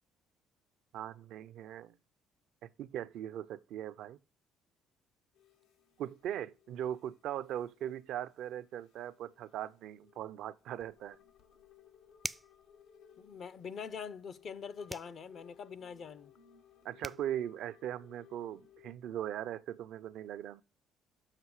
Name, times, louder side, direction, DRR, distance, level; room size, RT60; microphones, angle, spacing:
voice 1, 0.9-2.0 2.6-4.2 6.0-11.2 16.8-20.6, right 11 dB, 75° right, 0.4 m, -40 dB
sound 1, 5.3-18.9, left 8 dB, 85° left, 1.0 m, -63 dB
sound 2, 12.2-12.6 14.9-15.2 16.7-16.8 17.0-17.3, right 1 dB, 10° right, 0.3 m, -41 dB
voice 2, 13.2-16.3, left 6 dB, 55° left, 0.5 m, -44 dB
7.4 x 6.1 x 4.7 m
supercardioid pair, 80°, 0 cm